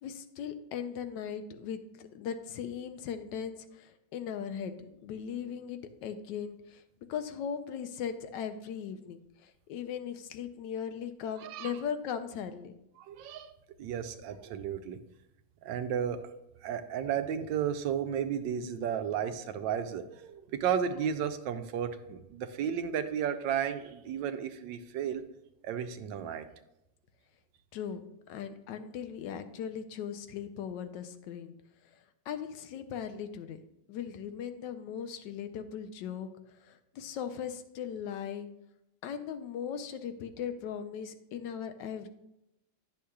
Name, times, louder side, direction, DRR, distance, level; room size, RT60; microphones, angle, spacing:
voice 1, 0.0-6.8 7.1-12.7 27.7-28.0 28.3-31.5 31.9-33.6 33.9-38.5 39.0-42.1, left 8 dB, 75° left, 9 dB, 1.2 m, -38 dB
voice 2, 11.4-11.7 13.0-13.5 13.8-15.0 15.6-16.2 16.6-25.3 25.6-26.5, right 8 dB, 80° right, 9 dB, 1.3 m, -33 dB
9.9 x 6.4 x 2.3 m, 0.87 s
omnidirectional pair, 2.0 m